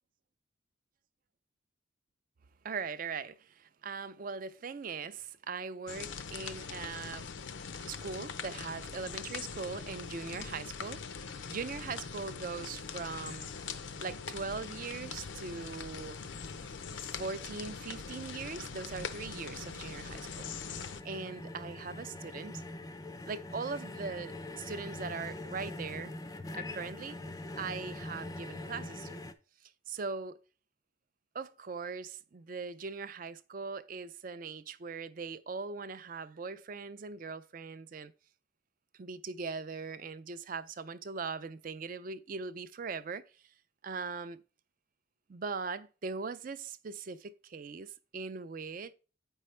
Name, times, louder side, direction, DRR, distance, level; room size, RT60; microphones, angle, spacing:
voice 1, 2.6-7.3 7.9-13.5 14.0-16.2 17.1-20.5 20.7-22.6 23.3-26.1 26.5-27.2 27.6-29.2 29.6-30.4 31.3-38.1 39.0-43.3 43.8-44.4 45.3-48.9, right 4 dB, 40° right, 0.4 m, -40 dB
sound 1, 5.9-21.0, left 5 dB, 65° left, 0.5 m, -42 dB
sound 2, 15.0-29.3, left 2 dB, 15° left, 0.4 m, -45 dB
8.4 x 5.4 x 3.2 m
head